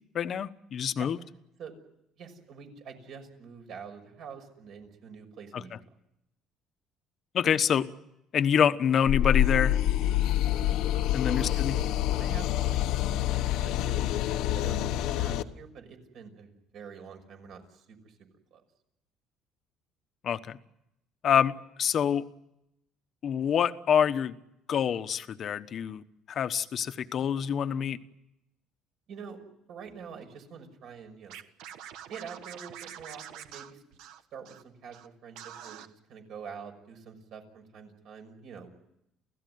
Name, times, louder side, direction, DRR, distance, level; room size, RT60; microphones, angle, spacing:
voice 1, 0.1-1.2 5.5-5.6 7.3-7.9 8.3-9.8 11.1-11.8 20.2-20.6 21.2-22.2 23.2-24.3 24.7-28.0, left 8 dB, 45° left, 11 dB, 1.2 m, -26 dB
voice 2, 2.2-5.8 11.2-14.2 14.5-18.1 18.5-18.6 27.1-27.3 29.1-29.4 29.7-31.4 32.1-33.8 34.3-38.7, right 6 dB, 60° right, 5 dB, 6.0 m, -46 dB
sound 1, 9.1-15.4, left 12 dB, 75° left, 1.2 m, -27 dB
Scratching (performance technique), 31.3-34.6 34.9-35.1 35.4-35.9, right 10 dB, 80° right, 1.5 m, -45 dB
29.5 x 16.5 x 9.4 m, 0.84 s
cardioid pair, 135°, 0 cm